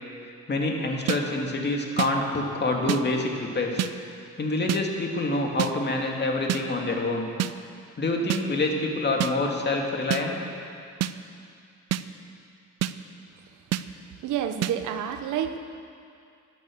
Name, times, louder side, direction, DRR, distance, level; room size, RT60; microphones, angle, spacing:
voice 1, 0.5-3.9 4.4-7.3 8.0-10.4, left 2 dB, 35° left, 1 dB, 2.2 m, -26 dB
sound 1, 1.1-1.2 2.0-2.1 2.9-3.0 3.8-3.9 4.7-4.8 5.6-5.7 6.5-6.6 7.4-7.5 8.3-8.4 9.2-9.3 10.1-10.2 11.0-11.1 11.9-12.0 12.8-12.9 13.7-13.8 14.6-14.7, right 12 dB, 60° right, 0.5 m, -26 dB
voice 2, 14.2-15.6, right 9 dB, 80° right, 8 dB, 1.0 m, -29 dB
13.5 x 10.5 x 6.4 m, 2.4 s
cardioid pair, 90°, 30 cm